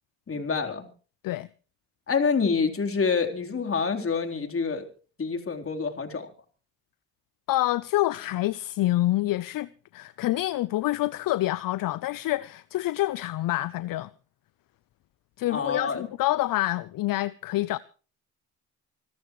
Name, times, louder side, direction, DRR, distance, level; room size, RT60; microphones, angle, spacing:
voice 1, 0.3-0.9 2.1-4.8 5.2-6.3 15.5-16.0, left 5 dB, 35° left, 3.9 m, -27 dB
voice 2, 7.5-14.1 15.4-17.8, left 16 dB, 65° left, 0.7 m, -27 dB
26.0 x 13.5 x 3.2 m
supercardioid pair, 75°, 36 cm